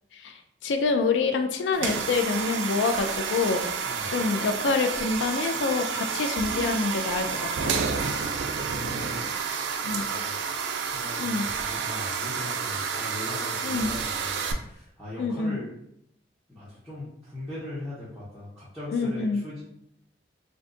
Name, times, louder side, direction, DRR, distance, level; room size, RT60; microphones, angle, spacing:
voice 1, 0.1-3.6 4.1-7.8 9.8-10.0 11.2-11.5 13.6-14.0 15.2-15.6 18.9-19.4, left 4 dB, 90° left, 7 dB, 0.3 m, -26 dB
sound 1, 1.7-14.5, right 6 dB, 90° right, 0.3 m, -30 dB
voice 2, 8.6-9.2 10.1-10.4 10.9-15.7 16.5-19.6, left 1 dB, ahead, -12 dB, 0.8 m, -40 dB
2.5 x 2.3 x 3.7 m, 0.77 s
head